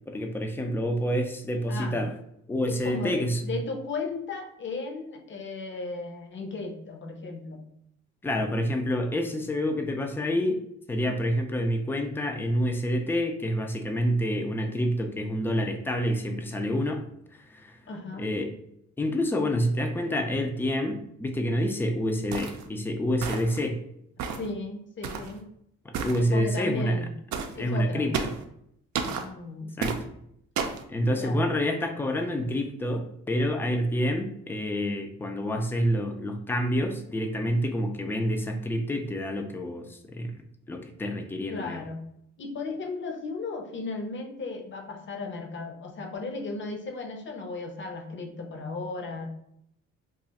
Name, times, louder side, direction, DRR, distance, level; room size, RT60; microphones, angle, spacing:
voice 1, 0.1-2.1 2.5-3.5 8.2-10.6 10.9-17.0 17.5-17.8 18.2-18.5 19.0-23.8 26.0-27.0 27.6-28.3 29.8-30.0 30.9-40.3 40.7-41.8, equal, 10° left, 4 dB, 0.4 m, -28 dB
voice 2, 1.7-2.0 2.7-7.6 17.9-18.3 24.2-25.5 26.2-27.1 27.5-28.1 29.0-29.8 31.2-31.4 41.5-42.0 42.4-49.3, left 3 dB, 40° left, 3 dB, 0.7 m, -35 dB
sound 1, 22.3-22.6 23.2-23.6 24.2-24.5 25.0-25.3 25.9-26.2 27.3-27.5 28.1-28.4 28.9-29.2 29.8-30.0 30.6-30.8, right 6 dB, 70° right, 0.5 m, -31 dB
2.4 x 2.4 x 4.0 m, 0.72 s
cardioid pair, 90°, 30 cm